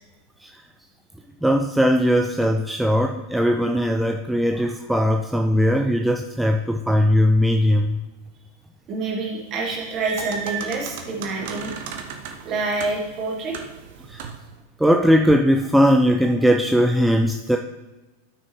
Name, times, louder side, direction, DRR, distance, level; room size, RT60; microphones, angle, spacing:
voice 1, 1.4-8.0 14.1-14.2 14.8-17.6, equal, 5° right, 4 dB, 0.4 m, -19 dB
voice 2, 8.9-11.8 12.2-13.6, right 3 dB, 35° right, -2 dB, 2.4 m, -27 dB
sound 1, 9.6-14.5, right 6 dB, 50° right, 0.9 m, -35 dB
13.0 x 6.2 x 3.1 m, 1.1 s
figure-of-eight pair, 90°, 0 cm